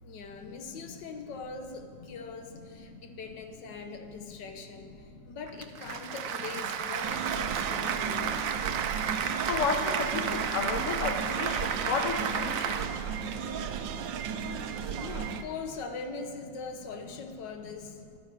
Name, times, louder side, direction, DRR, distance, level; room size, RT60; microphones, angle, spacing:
voice 1, 0.0-8.4 14.9-18.0, left 4 dB, 75° left, 5 dB, 1.6 m, -41 dB
Applause, 5.5-12.9, right 7 dB, 65° right, 0.9 m, -32 dB
sound 1, 7.0-15.4, right 7 dB, 90° right, 1.4 m, -35 dB
voice 2, 9.5-12.8, left 5 dB, 50° left, 5 dB, 1.1 m, -32 dB
10.5 x 9.7 x 6.4 m, 2.2 s
omnidirectional pair, 2.0 m